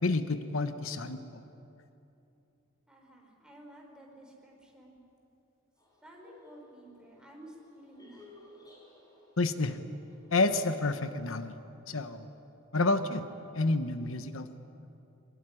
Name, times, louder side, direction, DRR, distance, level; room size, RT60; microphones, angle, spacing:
voice 1, 0.0-1.4 9.4-9.8 10.3-11.5 11.9-12.3 12.7-13.2 13.5-14.5, left 3 dB, 85° left, 10 dB, 1.1 m, -29 dB
voice 2, 2.9-5.0 6.0-8.3, right 1 dB, 5° right, 0 dB, 4.2 m, -53 dB
sound 1, 5.8-11.5, left 2 dB, 20° left, 5.1 m, -58 dB
22.5 x 20.0 x 9.9 m, 2.8 s
head